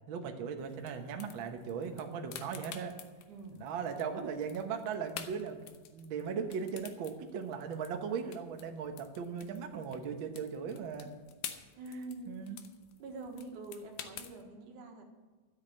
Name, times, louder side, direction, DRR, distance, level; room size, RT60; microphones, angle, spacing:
voice 1, 0.1-2.9 3.5-11.1 12.3-12.6, right 6 dB, 60° right, 4 dB, 1.3 m, -38 dB
sound 1, 0.6-14.4, left 10 dB, 90° left, 2.5 m, -50 dB
voice 2, 3.3-3.6 11.8-12.4 13.0-15.0, right 2 dB, 75° right, 3 dB, 3.0 m, -45 dB
12.5 x 8.3 x 7.5 m, 1.3 s
omnidirectional pair, 3.6 m